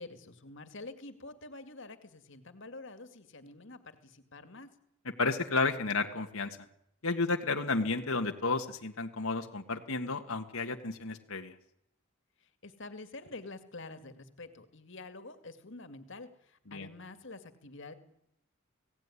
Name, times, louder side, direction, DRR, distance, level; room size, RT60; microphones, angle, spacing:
voice 1, 0.0-4.7 12.4-17.9, left 3 dB, 60° left, 10 dB, 2.2 m, -47 dB
voice 2, 5.2-6.6 7.0-11.5 16.7-16.9, left 3 dB, 85° left, 4 dB, 1.8 m, -32 dB
29.5 x 17.5 x 9.9 m, 0.80 s
head